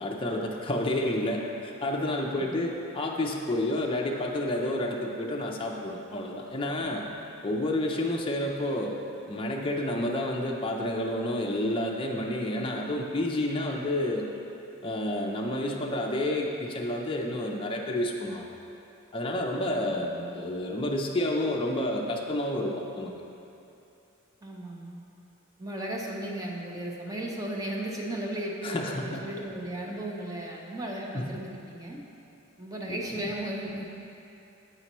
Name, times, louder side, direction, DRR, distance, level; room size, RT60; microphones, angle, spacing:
voice 1, 0.0-7.0 7.4-8.9 9.3-14.3 14.8-18.5 19.1-23.1 28.6-29.3 31.1-31.3 32.9-33.3, left 1 dB, 25° left, 0 dB, 0.4 m, -30 dB
voice 2, 6.8-7.2 13.7-13.8 19.7-20.3 24.4-25.0 25.6-32.0 32.6-33.9, right 1 dB, 15° right, -2 dB, 0.6 m, -36 dB
8.0 x 5.5 x 3.0 m, 2.8 s
head